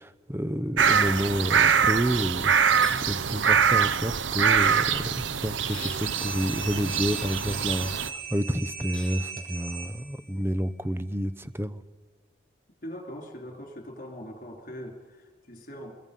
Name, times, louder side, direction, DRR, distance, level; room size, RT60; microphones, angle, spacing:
voice 1, 0.0-2.8 3.1-11.8, equal, 15° right, 13 dB, 0.8 m, -30 dB
sound 1, 0.8-8.1, right 7 dB, 85° right, 0.8 m, -24 dB
sound 2, 2.8-3.0 5.6-6.1 8.8-9.2, left 3 dB, 5° left, 7.7 m, -41 dB
sound 3, 6.0-10.3, right 5 dB, 45° right, 3.9 m, -39 dB
voice 2, 12.8-16.0, equal, 45° left, 3 dB, 4.2 m, -41 dB
26.0 x 22.0 x 5.5 m, 1.5 s
head